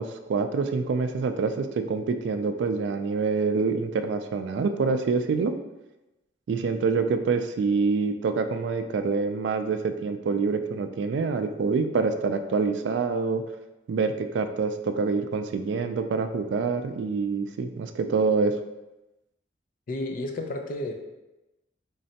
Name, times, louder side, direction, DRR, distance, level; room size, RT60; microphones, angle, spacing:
voice 1, 0.0-5.5 6.5-13.4 13.9-18.5, right 4 dB, 70° right, 8 dB, 0.3 m, -26 dB
voice 2, 19.9-20.9, left 1 dB, 50° left, 4 dB, 0.4 m, -31 dB
3.8 x 3.2 x 2.8 m, 1.0 s
head